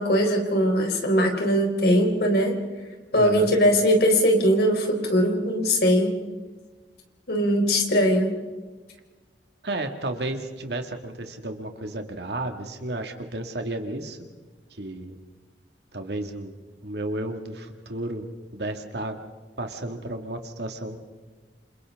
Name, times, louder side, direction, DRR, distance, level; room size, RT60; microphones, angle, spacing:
voice 1, 0.0-2.5 3.1-6.1 7.3-8.3, equal, 60° left, 2 dB, 4.1 m, -21 dB
voice 2, 3.2-3.6 9.6-14.2 14.8-15.2 15.9-16.5 16.8-18.3 18.5-19.2 19.6-21.0, right 1 dB, 65° right, 5 dB, 2.2 m, -32 dB
28.0 x 27.5 x 3.8 m, 1.3 s
head